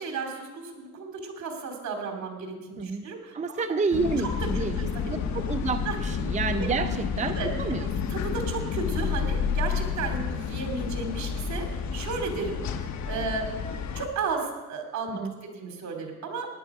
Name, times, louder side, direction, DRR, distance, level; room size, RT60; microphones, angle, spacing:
voice 1, 0.0-3.6 4.2-4.3 4.5-5.1 5.8-6.0 6.5-6.7 7.3-7.5 7.8-13.5 13.9-15.2 15.5-16.5, right 4 dB, 65° right, 3 dB, 2.7 m, -34 dB
voice 2, 2.8-3.1 3.3-8.1 15.2-15.3, right 4 dB, 25° right, 8 dB, 0.6 m, -30 dB
sound 1, 3.9-14.1, left 6 dB, 65° left, 1.1 m, -30 dB
15.5 x 10.5 x 4.9 m, 1.2 s
cardioid pair, 90°, 30 cm